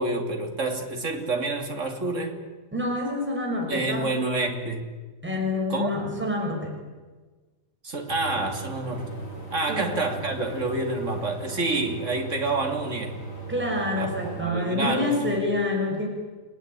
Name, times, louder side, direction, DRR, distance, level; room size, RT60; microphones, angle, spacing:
voice 1, 0.0-2.4 3.7-4.9 5.7-5.9 7.8-9.1 9.5-13.2 14.0-15.1, right 2 dB, 45° right, 3.3 m, -28 dB
voice 2, 2.7-4.1 5.2-6.8 9.7-9.9 13.5-16.1, left 2 dB, 5° right, 5.9 m, -27 dB
sound 1, 8.1-14.4, right 3 dB, 80° left, 8.4 m, -38 dB
29.5 x 19.0 x 8.9 m
omnidirectional pair, 1.7 m